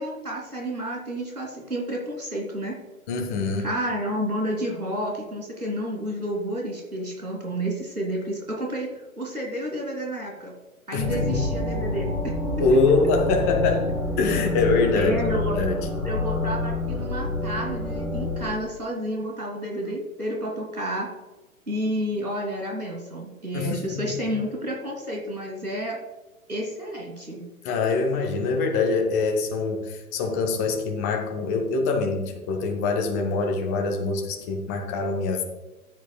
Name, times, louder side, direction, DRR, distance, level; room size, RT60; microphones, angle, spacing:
voice 1, 0.0-2.8 3.6-10.5 10.9-12.1 12.7-12.8 15.0-15.6 16.0-21.1 21.7-26.0 26.5-27.4, equal, 90° right, -1 dB, 2.8 m, -30 dB
voice 2, 3.1-3.7 10.9-11.4 12.6-13.9 14.2-15.1 15.5-15.8 23.5-24.0 27.6-35.4, left 3 dB, 10° left, 3 dB, 0.5 m, -24 dB
sound 1, 11.0-18.5, left 2 dB, 5° right, 2.7 m, -27 dB
14.5 x 9.1 x 2.2 m, 1.1 s
figure-of-eight pair, 115°, 44 cm